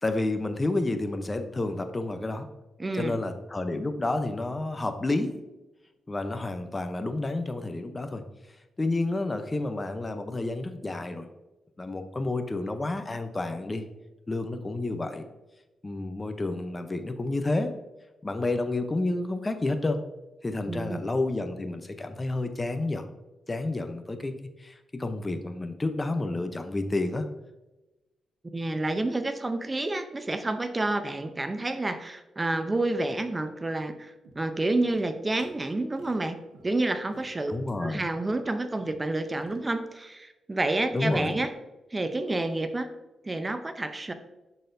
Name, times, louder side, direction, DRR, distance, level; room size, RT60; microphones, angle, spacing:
voice 1, 0.0-2.4 2.9-5.4 6.1-8.2 8.8-11.3 11.8-13.9 14.3-15.2 15.8-17.8 18.2-20.0 20.4-23.0 23.5-27.3 37.5-38.1 40.9-41.4, left 2 dB, 25° left, 8 dB, 0.6 m, -30 dB
voice 2, 2.8-3.2 20.7-21.1 28.5-36.4 36.6-37.5 37.8-41.5 41.9-42.9 43.2-44.1, right 2 dB, 25° right, 8 dB, 0.6 m, -29 dB
sound 1, 34.2-35.0 35.4-35.5 36.0-37.2 37.7-37.8 38.2-38.3 38.8-39.6, right 3 dB, 90° right, 1.0 m, -54 dB
10.5 x 4.1 x 2.6 m, 1.0 s
cardioid pair, 70°, 0 cm